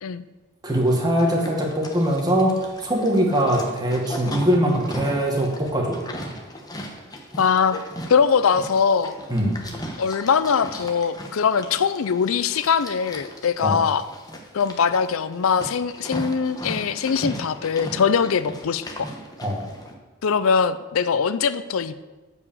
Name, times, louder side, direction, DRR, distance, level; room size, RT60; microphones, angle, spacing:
voice 1, 0.6-6.0 9.3-9.6 13.6-13.8 19.4-19.6, equal, 20° right, 0 dB, 1.5 m, -22 dB
Livestock farm animals working animals, 0.7-19.9, equal, 20° left, 1.0 m, -37 dB
voice 2, 7.4-7.8 8.1-9.1 10.0-14.0 14.5-19.1 20.2-22.0, left 6 dB, 75° left, 14 dB, 0.5 m, -22 dB
8.1 x 4.9 x 7.0 m, 1.2 s
head